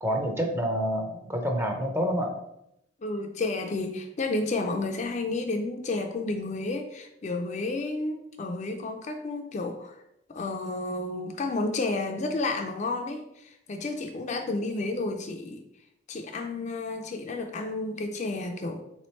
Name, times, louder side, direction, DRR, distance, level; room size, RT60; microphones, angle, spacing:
voice 1, 0.0-2.3, equal, 10° right, 2 dB, 0.5 m, -28 dB
voice 2, 3.0-9.9 10.3-15.6 16.1-18.8, left 2 dB, 35° left, 4 dB, 0.4 m, -31 dB
3.4 x 3.1 x 4.2 m, 0.81 s
head